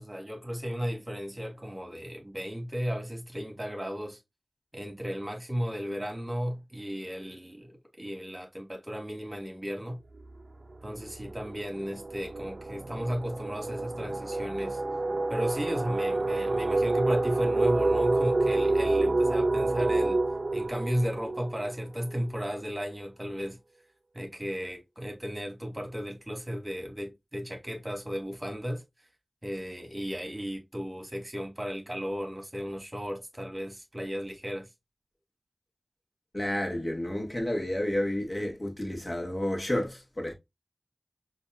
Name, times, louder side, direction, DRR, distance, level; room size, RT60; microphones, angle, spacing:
voice 1, 0.0-4.2 4.7-10.0 10.8-14.8 15.3-20.2 20.5-23.6 24.1-28.8 29.4-34.7, equal, 30° right, 1.6 m, -35 dB
sound 1, 10.2-10.4 10.7-22.3, right 2 dB, 90° right, 0.3 m, -28 dB
voice 2, 36.3-40.3, left 1 dB, 45° left, 1.3 m, -30 dB
5.3 x 2.7 x 2.3 m
wide cardioid pair, 40°, 0 cm